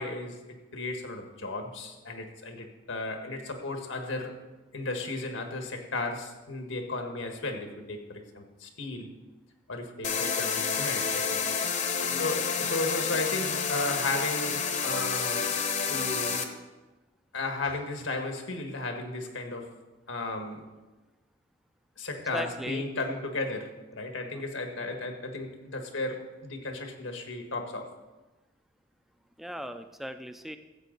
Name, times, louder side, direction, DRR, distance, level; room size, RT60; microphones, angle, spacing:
voice 1, 0.0-4.4 4.7-9.1 9.7-11.6 12.2-15.5 15.9-16.5 17.3-19.7 20.1-20.6 22.0-27.9, left 2 dB, 85° left, 4 dB, 1.5 m, -35 dB
sound 1, 10.0-16.4, left 6 dB, 35° left, 0.8 m, -29 dB
voice 2, 22.3-22.9 24.2-24.4 29.4-30.6, equal, ahead, 8 dB, 0.4 m, -38 dB
14.0 x 8.1 x 4.0 m, 1.2 s
head